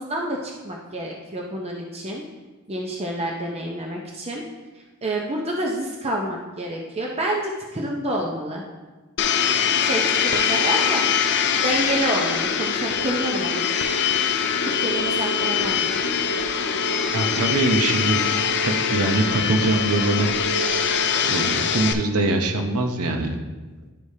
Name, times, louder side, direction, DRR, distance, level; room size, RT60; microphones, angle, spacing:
voice 1, 0.0-2.2 2.7-4.4 5.0-8.6 9.8-11.1 11.6-13.6 14.6-15.9, right 1 dB, 30° right, -1 dB, 0.6 m, -28 dB
Domestic sounds home sounds, 9.2-21.9, left 6 dB, 50° left, 0.4 m, -23 dB
voice 2, 17.1-18.3 18.6-20.3 21.2-23.4, right 2 dB, 85° right, 3 dB, 0.8 m, -23 dB
11.0 x 5.0 x 2.7 m, 1.2 s
head